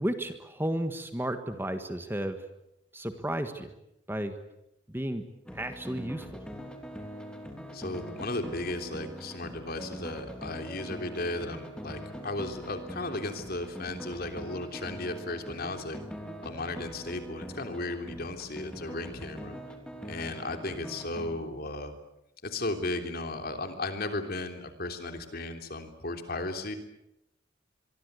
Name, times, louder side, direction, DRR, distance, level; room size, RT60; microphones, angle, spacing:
voice 1, 0.0-2.4 2.9-3.7 4.1-4.3 4.9-5.2 5.5-6.3, right 1 dB, 10° right, 8 dB, 1.5 m, -33 dB
sound 1, 5.5-21.3, equal, 5° left, 3.0 m, -43 dB
voice 2, 7.7-16.0 16.4-19.5 20.1-21.9 22.4-26.8, left 2 dB, 50° left, 6 dB, 3.3 m, -35 dB
25.5 x 23.5 x 8.2 m, 0.86 s
head